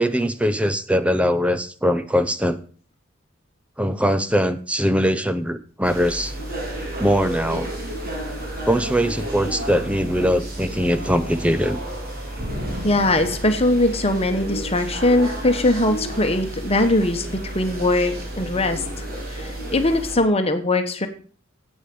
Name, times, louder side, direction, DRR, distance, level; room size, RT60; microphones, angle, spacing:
voice 1, 0.0-2.6 3.8-6.3 7.0-7.7 8.7-11.8, equal, 5° right, 11 dB, 0.7 m, -21 dB
sound 1, 5.8-20.2, right 1 dB, 50° right, 3.5 m, -31 dB
voice 2, 12.8-18.8 19.3-21.1, left 2 dB, 30° left, 7 dB, 1.4 m, -21 dB
8.5 x 8.2 x 6.9 m, 0.40 s
head